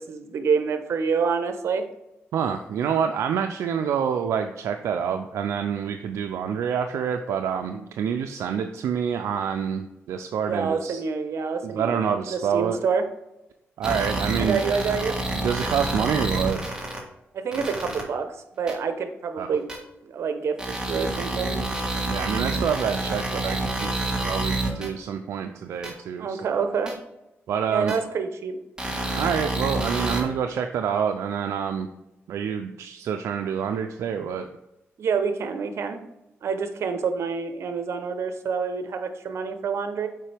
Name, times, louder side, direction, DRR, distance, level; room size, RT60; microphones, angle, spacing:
voice 1, 0.0-1.9 10.5-13.1 14.4-15.2 17.3-18.3 18.6-19.7 20.0-21.6 26.2-26.9 27.7-28.6 35.0-36.0 36.4-40.1, right 5 dB, 70° right, 8 dB, 0.8 m, -27 dB
voice 2, 2.3-11.0 11.6-12.8 13.8-14.6 15.4-16.6 19.4-19.6 22.1-26.6 27.5-28.0 29.2-31.9 32.3-34.5, right 7 dB, 90° right, 6 dB, 0.4 m, -27 dB
sound 1, 13.8-17.0 17.5-18.0 18.7-18.8 19.7-19.8 20.6-24.9 25.8-25.9 26.9-27.0 27.9-28.0 28.8-30.2, right 2 dB, 15° right, 1.5 m, -28 dB
7.4 x 4.8 x 3.4 m, 0.91 s
cardioid pair, 80°, 5 cm